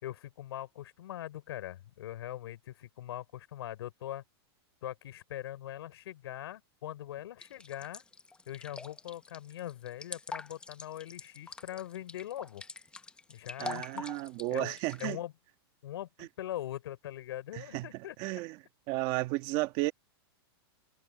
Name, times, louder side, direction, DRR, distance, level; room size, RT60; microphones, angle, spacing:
voice 1, 0.0-4.2 4.8-8.0 8.5-12.6 13.3-14.0 14.5-15.3 15.8-18.2, left 13 dB, 70° left, 5.0 m, -41 dB
sound 1, 7.4-15.1, left 3 dB, 5° left, 0.9 m, -45 dB
voice 2, 13.6-15.2 17.5-17.9 18.2-18.6 18.9-19.9, right 20 dB, 35° right, 1.5 m, -33 dB
supercardioid pair, 160°, 14 cm